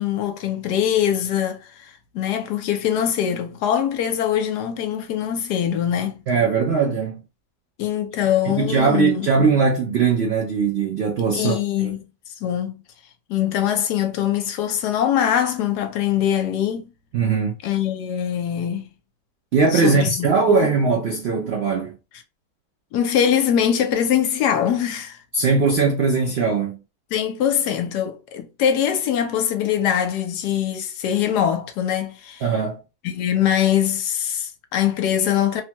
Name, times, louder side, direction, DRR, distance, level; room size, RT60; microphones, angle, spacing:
voice 1, 0.0-6.2 7.8-9.3 11.3-12.0 12.4-12.8 13.3-16.9 17.6-18.9 19.7-20.7 22.9-25.2 27.1-32.4 33.0-35.6, left 9 dB, 75° left, 1.1 m, -22 dB
voice 2, 6.3-7.2 8.4-11.9 17.1-17.6 19.5-21.9 25.3-26.8 32.4-32.8, right 5 dB, 90° right, 0.5 m, -20 dB
3.0 x 2.2 x 2.8 m
omnidirectional pair, 1.8 m